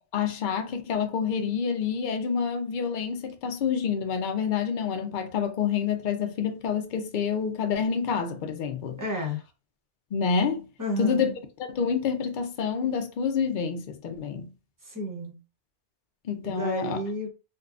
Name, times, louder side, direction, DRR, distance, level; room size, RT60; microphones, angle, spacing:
voice 1, 0.1-9.0 10.1-10.7 11.0-11.3 11.7-14.5 16.2-17.0, left 6 dB, 60° left, 0.5 m, -28 dB
voice 2, 9.0-9.4 10.8-11.4 14.8-15.4 16.5-17.3, equal, 20° right, 0.6 m, -31 dB
3.5 x 2.3 x 2.4 m
omnidirectional pair, 1.3 m